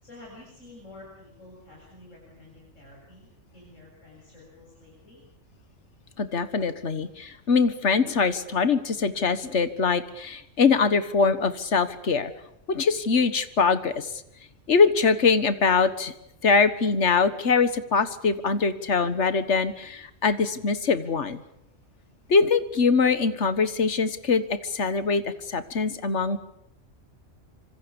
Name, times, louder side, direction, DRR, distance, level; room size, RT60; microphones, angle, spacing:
voice 1, 0.0-5.2, left 2 dB, 85° left, -3 dB, 7.8 m, -49 dB
voice 2, 6.2-12.3 12.7-14.1 14.7-16.1 16.4-21.4 22.3-26.4, left 5 dB, 65° left, 12 dB, 1.7 m, -23 dB
26.0 x 25.5 x 7.0 m, 0.80 s
omnidirectional pair, 1.3 m